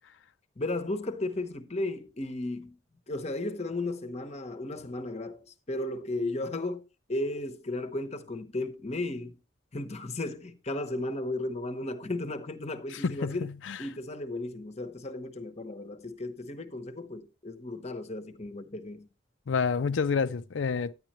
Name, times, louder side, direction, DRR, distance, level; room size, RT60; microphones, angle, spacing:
voice 1, 0.6-2.8 3.1-6.8 7.1-9.4 9.7-13.5 13.8-19.1, left 2 dB, 35° left, 0.9 m, -35 dB
voice 2, 12.9-13.8 19.5-20.9, left 5 dB, 70° left, 0.5 m, -29 dB
10.5 x 9.5 x 3.0 m
head